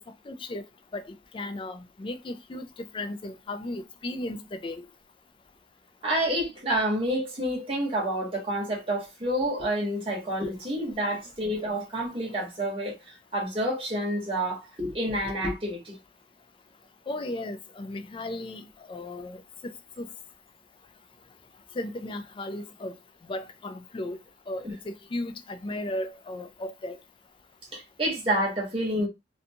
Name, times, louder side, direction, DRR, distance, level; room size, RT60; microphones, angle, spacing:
voice 1, 0.3-0.6 0.9-2.7 2.9-4.8 17.1-20.1 21.7-22.9 23.2-24.2 24.5-27.0, left 1 dB, 30° left, 0.3 m, -35 dB
voice 2, 6.0-15.9 24.6-24.7 27.7-29.1, right 1 dB, 30° right, 1.1 m, -29 dB
2.5 x 2.3 x 2.7 m
head